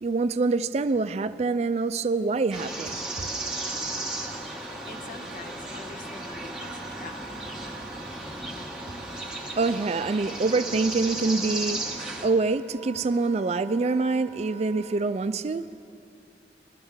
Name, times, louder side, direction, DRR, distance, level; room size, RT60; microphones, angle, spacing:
voice 1, 0.0-3.0 9.6-15.7, right 3 dB, 35° right, 13 dB, 0.4 m, -25 dB
sound 1, 2.5-12.3, right 1 dB, 5° right, 1.1 m, -35 dB
Wind instrument woodwind instrument, 2.7-15.0, right 5 dB, 85° left, 2.4 m, -47 dB
voice 2, 4.9-7.5, left 3 dB, 50° left, 5 dB, 0.8 m, -45 dB
20.5 x 13.0 x 3.6 m, 2.4 s
head